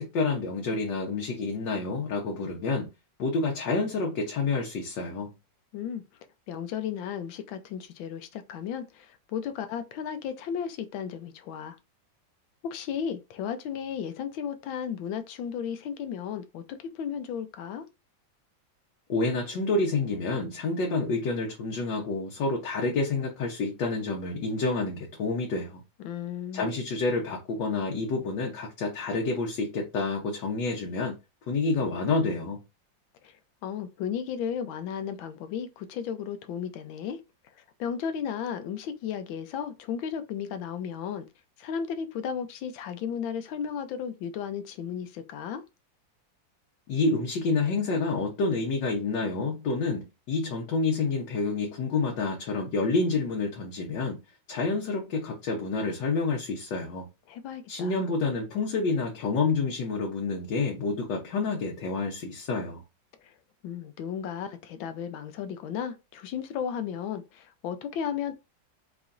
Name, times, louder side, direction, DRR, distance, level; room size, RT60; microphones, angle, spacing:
voice 1, 0.0-2.9 3.2-5.3 19.1-25.8 26.5-31.1 31.5-32.6 46.9-54.2 54.5-57.1 57.7-62.8, left 3 dB, 70° left, 1.5 m, -28 dB
voice 2, 6.5-11.8 12.6-17.9 26.0-26.6 33.2-37.2 37.6-41.3 41.6-45.6 57.3-58.1 63.2-63.3 63.6-68.3, left 8 dB, 85° left, 1.4 m, -34 dB
4.6 x 3.1 x 2.5 m
omnidirectional pair, 2.1 m